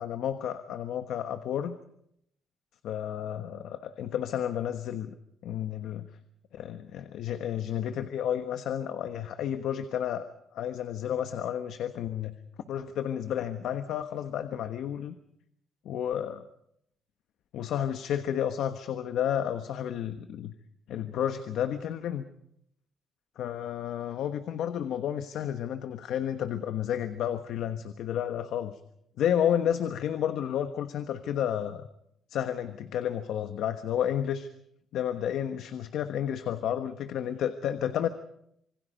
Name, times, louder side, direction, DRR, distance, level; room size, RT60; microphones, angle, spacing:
voice 1, 0.0-1.8 2.8-5.1 5.4-6.1 6.5-10.3 10.5-12.4 12.7-15.1 15.8-16.4 17.5-20.5 20.9-22.2 23.4-28.8 29.2-31.9 32.3-34.5 34.9-38.1, left 9 dB, 75° left, 8 dB, 1.3 m, -31 dB
26.5 x 23.5 x 5.3 m, 0.74 s
cardioid pair, 160°, 0 cm